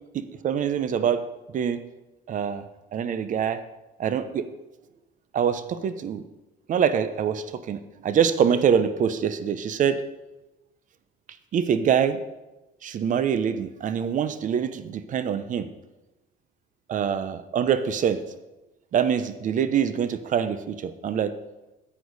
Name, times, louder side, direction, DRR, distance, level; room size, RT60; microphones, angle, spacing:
voice 1, 0.1-1.2 1.5-1.8 2.3-2.6 2.9-3.6 4.0-4.5 5.3-6.2 6.7-10.0 11.5-12.2 12.8-15.7 16.9-18.2 18.9-21.3, right 8 dB, 50° right, 12 dB, 0.7 m, -24 dB
9.5 x 8.4 x 4.0 m, 1.0 s
cardioid pair, 110°, 17 cm